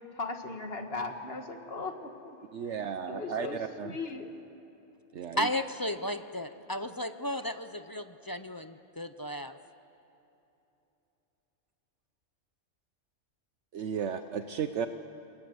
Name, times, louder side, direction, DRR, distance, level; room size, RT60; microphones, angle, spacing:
voice 1, 0.2-2.3 3.1-3.6 3.8-4.3, left 3 dB, 50° left, 5 dB, 2.0 m, -37 dB
voice 2, 2.5-4.0 5.1-5.5 13.7-14.9, right 7 dB, 70° right, 9 dB, 1.1 m, -34 dB
voice 3, 5.3-9.6, left 1 dB, 25° left, 10 dB, 0.5 m, -34 dB
28.5 x 21.0 x 7.9 m, 3.0 s
omnidirectional pair, 1.3 m